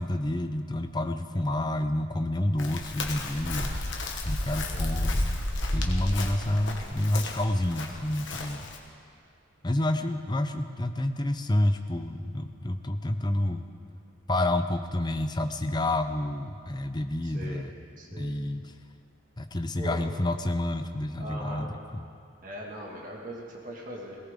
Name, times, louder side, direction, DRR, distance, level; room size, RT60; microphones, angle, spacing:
voice 1, 0.0-4.0 4.3-5.2 5.7-8.7 9.6-13.7 14.3-17.7 18.2-18.6 19.4-22.1, left 1 dB, 20° left, 8 dB, 0.6 m, -29 dB
Chirp tweet, 2.6-8.8, left 1 dB, 60° left, 1.4 m, -31 dB
voice 2, 4.6-5.1 17.2-17.6 18.0-18.3 19.7-20.0 21.2-21.7 22.4-24.2, equal, 40° right, -2 dB, 2.0 m, -40 dB
18.0 x 17.5 x 3.7 m, 2.4 s
head